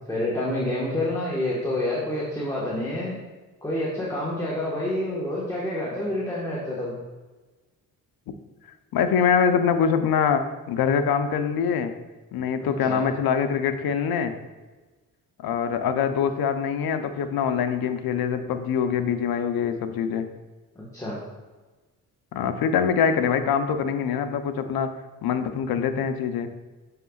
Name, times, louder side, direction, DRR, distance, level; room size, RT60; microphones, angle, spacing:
voice 1, 0.1-3.2 3.6-6.9 12.6-13.0 20.7-21.2, left 1 dB, 10° left, -6 dB, 1.3 m, -28 dB
voice 2, 8.9-11.9 12.3-14.4 15.4-20.3 22.3-24.9 25.2-26.5, left 7 dB, 75° left, 8 dB, 0.6 m, -24 dB
6.7 x 6.4 x 2.3 m, 1.2 s
cardioid pair, 95°, 37 cm